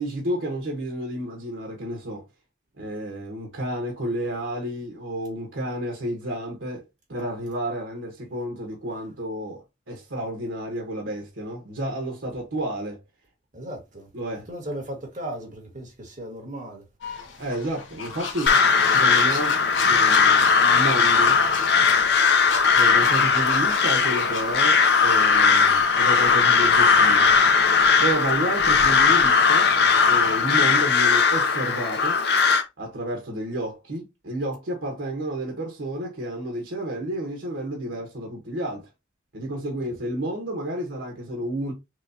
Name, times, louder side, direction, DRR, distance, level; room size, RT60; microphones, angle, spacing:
voice 1, 0.0-2.3 2.8-13.0 14.1-14.5 17.4-18.6 18.9-19.6 19.9-21.4 22.7-27.3 28.0-29.7 30.1-32.2 32.8-38.9 39.3-41.7, right 1 dB, 85° right, 1.3 m, -31 dB
voice 2, 13.5-14.1 14.3-16.9 20.1-20.2, right 1 dB, 40° right, 1.7 m, -36 dB
sound 1, 17.0-31.4, left 5 dB, 80° left, 1.0 m, -36 dB
Crow, 18.5-32.6, left 5 dB, 55° left, 0.6 m, -18 dB
6.2 x 2.4 x 2.7 m
head